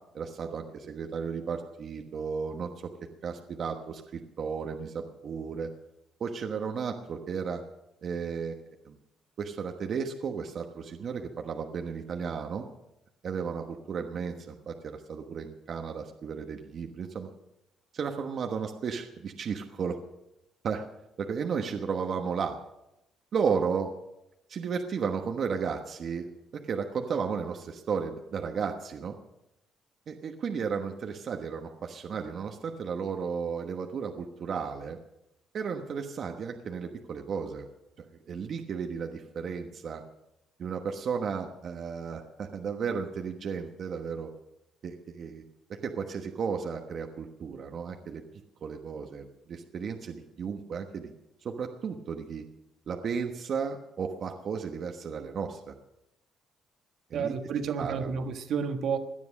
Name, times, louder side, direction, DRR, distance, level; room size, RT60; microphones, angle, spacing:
voice 1, 0.1-2.9 3.2-5.7 6.2-7.6 8.0-8.6 8.8-9.0 9.4-12.7 13.2-17.3 17.9-20.0 20.6-20.9 21.2-22.6 23.3-23.9 24.5-29.1 30.1-35.0 35.5-37.7 38.0-40.0 40.6-44.3 44.8-45.4 45.8-48.2 48.6-51.1 51.4-52.4 52.9-55.7 57.1-57.3 57.8-58.1, right 6 dB, 55° right, 1.2 m, -34 dB
voice 2, 57.1-59.0, right 6 dB, 70° right, 1.4 m, -30 dB
17.0 x 10.5 x 6.5 m
cardioid pair, 110°, 0 cm